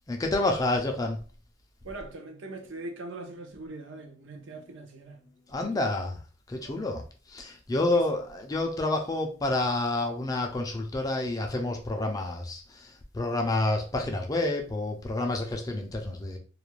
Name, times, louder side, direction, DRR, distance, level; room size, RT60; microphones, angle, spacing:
voice 1, 0.1-1.2 5.5-6.2 6.5-16.4, left 2 dB, 20° left, 0.3 m, -29 dB
voice 2, 1.8-5.3 5.6-5.9 6.6-6.9 7.9-8.2, right 2 dB, 70° right, 0.5 m, -42 dB
2.4 x 2.1 x 3.0 m
head